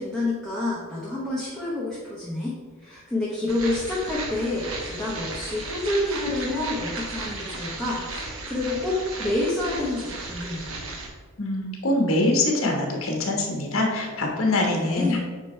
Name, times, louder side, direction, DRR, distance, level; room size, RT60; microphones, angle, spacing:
voice 1, 0.0-2.5 2.8-10.7 14.5-15.2, left 2 dB, ahead, -7 dB, 1.0 m, -28 dB
sound 1, 3.5-11.1, right 2 dB, 70° right, 1.2 m, -35 dB
voice 2, 11.4-15.2, left 2 dB, 65° left, 1 dB, 1.3 m, -24 dB
8.9 x 3.0 x 4.5 m, 1.5 s
head